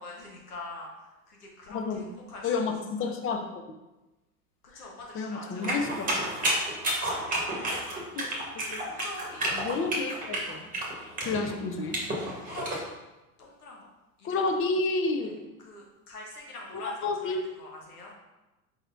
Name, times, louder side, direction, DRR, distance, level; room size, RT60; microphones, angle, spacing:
voice 1, 0.0-2.5 3.0-3.1 4.7-5.8 7.0-7.2 7.6-8.0 8.6-9.5 12.4-12.9 13.4-13.8 14.2-14.3 15.2-15.3 15.6-18.1, left 2 dB, 85° left, -1 dB, 1.2 m, -44 dB
voice 2, 1.7-2.0 2.4-3.5 4.7-4.9 5.1-6.1 6.4-6.5 7.7-8.3 8.5-8.8 9.5-10.7 11.2-12.0 14.2-15.4 16.8-17.4, left 3 dB, 30° left, 5 dB, 0.6 m, -30 dB
sound 1, 5.6-12.8, right 1 dB, 20° right, 1.3 m, -31 dB
4.6 x 3.9 x 2.6 m, 1.0 s
hypercardioid pair, 90°, 44 cm